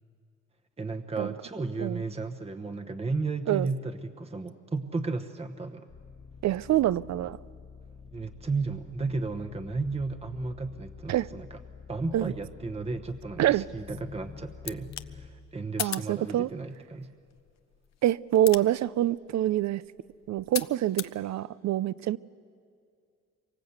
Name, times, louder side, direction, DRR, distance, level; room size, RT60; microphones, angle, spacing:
voice 1, 0.8-5.9 8.1-11.6 11.9-17.1, right 3 dB, 20° right, 1.0 m, -34 dB
sound 1, 5.9-15.3, left 5 dB, 30° left, 1.3 m, -48 dB
voice 2, 6.4-7.4 11.1-11.3 12.1-12.3 13.4-13.6 15.8-16.5 18.0-19.8 20.3-22.2, right 13 dB, 65° right, 0.6 m, -26 dB
sound 2, 14.1-21.2, left 11 dB, 60° left, 0.8 m, -41 dB
26.0 x 24.0 x 8.1 m
cardioid pair, 90°, 30 cm